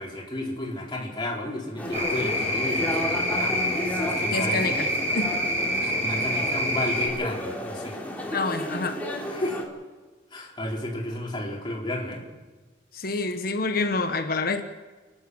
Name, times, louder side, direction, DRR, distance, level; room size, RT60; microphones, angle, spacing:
voice 1, 0.0-4.6 6.0-8.0 9.3-9.6 10.3-12.2, left 1 dB, 25° left, -3 dB, 4.6 m, -32 dB
sound 1, 1.8-9.6, left 1 dB, 10° left, 3.2 m, -32 dB
sound 2, 1.9-7.1, equal, 40° right, 6.3 m, -27 dB
voice 2, 4.3-5.4 5.8-5.9 8.3-9.0 12.9-14.6, left 3 dB, 55° left, 7 dB, 1.3 m, -28 dB
30.0 x 11.5 x 7.9 m, 1.3 s
head